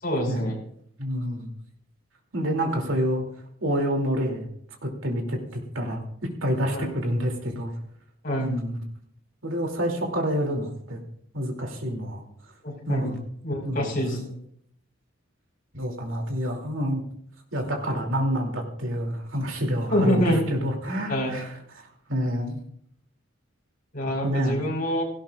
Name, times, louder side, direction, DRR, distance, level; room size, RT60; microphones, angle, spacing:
voice 1, 0.0-0.6 6.7-6.9 8.2-8.5 12.6-13.1 13.4-14.3 19.9-20.4 21.1-21.4 23.9-25.0, equal, 45° left, -1 dB, 4.7 m, -26 dB
voice 2, 1.0-1.5 2.3-3.2 3.6-4.5 4.8-6.0 6.4-7.7 8.4-8.8 9.4-11.0 11.3-12.2 12.8-13.2 13.6-13.9 15.7-17.0 17.5-21.5 22.1-22.6 24.2-24.7, equal, 70° right, 2 dB, 2.7 m, -27 dB
17.0 x 16.0 x 2.4 m, 0.66 s
head